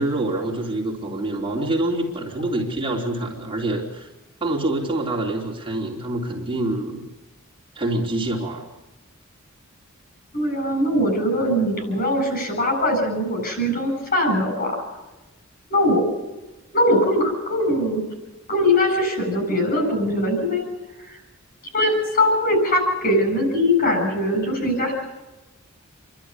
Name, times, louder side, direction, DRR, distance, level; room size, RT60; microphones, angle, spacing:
voice 1, 0.0-4.1 4.4-7.0 7.7-8.6, right 1 dB, 25° right, -1 dB, 3.4 m, -26 dB
voice 2, 10.3-14.8 15.7-16.1 16.7-18.0 18.5-20.6 21.1-21.2 21.7-24.9, left 1 dB, 45° left, 4 dB, 8.0 m, -21 dB
29.0 x 12.0 x 9.9 m, 1.1 s
head